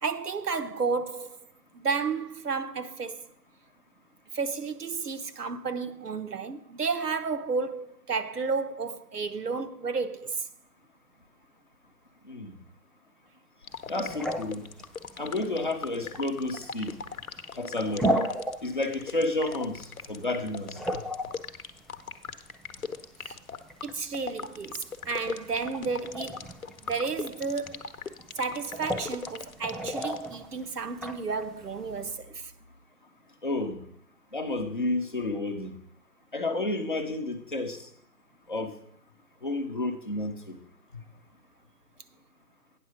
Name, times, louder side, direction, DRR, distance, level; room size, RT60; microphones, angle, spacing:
voice 1, 0.0-1.4 1.7-3.3 4.3-10.5 23.2-23.4 23.8-26.4 26.8-27.8 28.3-32.5, right 4 dB, 70° right, 0.9 m, -32 dB
sound 1, 13.6-30.3, left 5 dB, 60° left, 0.8 m, -38 dB
sound 2, 13.7-32.1, equal, ahead, 0.3 m, -37 dB
voice 2, 13.9-14.7 15.2-16.9 17.5-18.1 18.6-21.0 33.4-33.8 34.3-35.7 36.3-37.9 38.5-38.7 39.4-40.6 40.9-41.0, left 2 dB, 30° left, 0.8 m, -31 dB
9.2 x 6.3 x 5.0 m
figure-of-eight pair, 160°, 48 cm